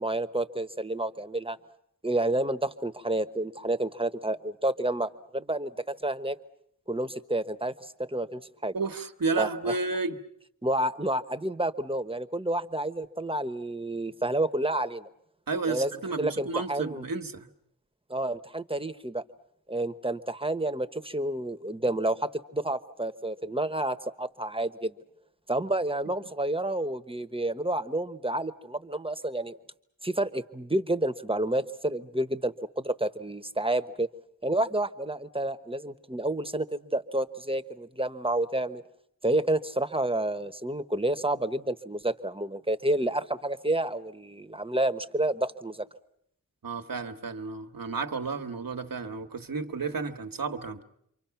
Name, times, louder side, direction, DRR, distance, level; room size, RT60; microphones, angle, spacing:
voice 1, 0.0-1.6 2.0-6.4 6.9-8.7 9.4-9.8 10.6-15.1 15.6-15.9 16.2-17.0 18.1-19.2 19.7-24.9 25.5-29.6 30.0-34.1 34.4-38.8 39.2-45.9, right 1 dB, 15° right, 1.1 m, -29 dB
voice 2, 8.7-10.2 15.5-17.5 46.6-50.8, right 4 dB, 85° right, 1.3 m, -32 dB
29.0 x 24.5 x 5.9 m
wide cardioid pair, 45°, 33 cm